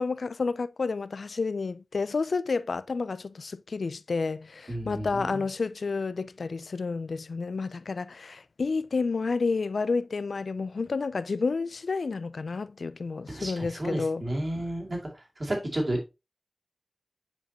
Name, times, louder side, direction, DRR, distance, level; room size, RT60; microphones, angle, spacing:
voice 1, 0.0-14.2, left 4 dB, 85° left, 0.3 m, -30 dB
voice 2, 4.7-5.4 13.3-16.1, right 1 dB, 50° right, 2.4 m, -32 dB
7.2 x 5.0 x 2.8 m
wide cardioid pair, 55°, 0 cm